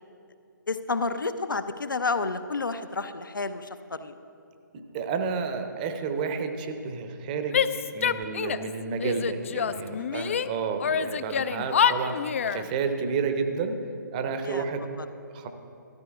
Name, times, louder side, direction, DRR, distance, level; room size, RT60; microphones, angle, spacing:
voice 1, 0.7-4.2 9.9-10.3 14.4-14.6 15.0-15.1, left 3 dB, 75° left, 10 dB, 0.6 m, -31 dB
voice 2, 4.9-7.6 7.9-13.8 14.1-14.8 15.3-15.5, right 5 dB, 25° right, 7 dB, 0.7 m, -30 dB
Female speech woman speaking / Yell, 7.5-8.7 9.0-10.5 10.8-12.6, left 7 dB, 40° left, 0.3 m, -26 dB
13.5 x 13.5 x 2.4 m, 2.5 s
figure-of-eight pair, 140°, 11 cm